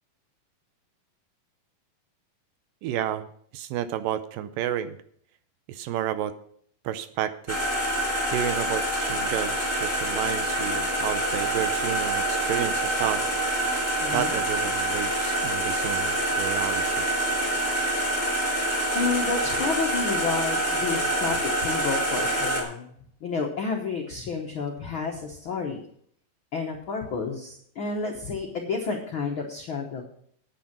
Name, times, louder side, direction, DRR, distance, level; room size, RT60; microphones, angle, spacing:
voice 1, 2.8-3.3 3.5-5.0 5.7-6.3 6.9-7.6 8.3-13.2 14.1-17.1, right 11 dB, 80° right, 12 dB, 2.3 m, -31 dB
sound 1, 7.5-22.6, right 1 dB, 5° right, 2.0 m, -26 dB
voice 2, 14.0-14.4 18.9-22.9 23.2-25.8 26.5-30.0, left 4 dB, 70° left, 1 dB, 1.2 m, -30 dB
9.4 x 9.4 x 5.9 m, 0.62 s
omnidirectional pair, 4.1 m